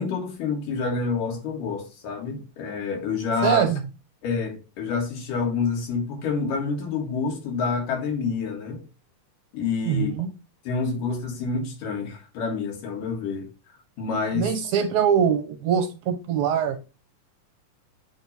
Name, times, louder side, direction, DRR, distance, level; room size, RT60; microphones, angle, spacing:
voice 1, 0.0-3.7 4.2-8.8 9.5-10.2 10.6-13.5 14.0-14.5, left 4 dB, 85° left, 3.3 m, -28 dB
voice 2, 3.4-3.8 9.9-10.3 14.3-16.8, right 8 dB, 70° right, 2.1 m, -23 dB
7.9 x 3.0 x 5.4 m
omnidirectional pair, 3.7 m